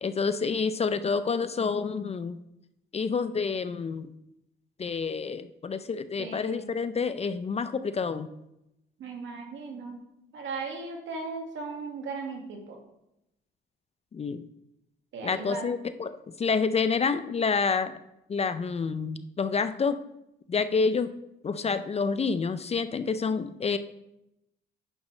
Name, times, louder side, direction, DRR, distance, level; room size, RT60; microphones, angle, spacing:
voice 1, 0.0-2.4 2.9-4.1 4.8-8.3 14.1-14.4 15.2-18.0 18.3-20.0 20.5-21.1 21.4-23.8, left 5 dB, 30° left, 12 dB, 0.5 m, -28 dB
voice 2, 6.2-6.7 9.0-10.0 10.3-12.8 15.1-15.7, right 4 dB, 75° right, 2 dB, 1.9 m, -37 dB
9.8 x 6.1 x 3.2 m, 0.86 s
cardioid pair, 90°, 20 cm